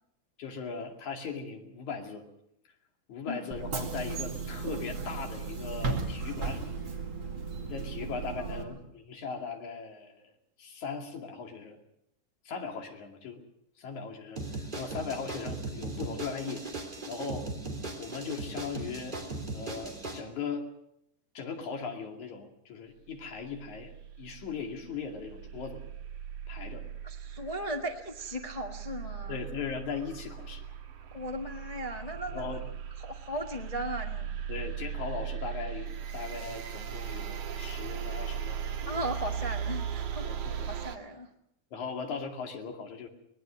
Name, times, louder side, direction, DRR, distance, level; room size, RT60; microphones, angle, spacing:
voice 1, 0.4-2.3 3.1-6.8 7.7-10.3 10.6-11.8 12.5-13.5 13.8-16.7 17.1-17.5 18.0-19.2 19.5-20.7 21.3-23.9 24.2-25.8 26.5-26.9 29.3-30.7 32.3-32.6 34.5-39.0 40.2-40.7 41.7-43.1, left 5 dB, 70° left, 3 dB, 3.8 m, -38 dB
Bus / Engine, 3.5-8.6, right 4 dB, 40° right, 3.1 m, -35 dB
voice 2, 8.4-8.8 27.0-29.4 31.1-32.6 33.0-34.3 38.9-40.3 40.7-41.3, right 1 dB, 25° left, 1 dB, 0.8 m, -37 dB
sound 1, 14.4-20.2, right 2 dB, 15° right, 2.9 m, -38 dB
sound 2, 23.3-41.0, right 8 dB, 75° right, 3.1 m, -38 dB
24.0 x 19.0 x 6.4 m, 0.75 s
omnidirectional pair, 3.5 m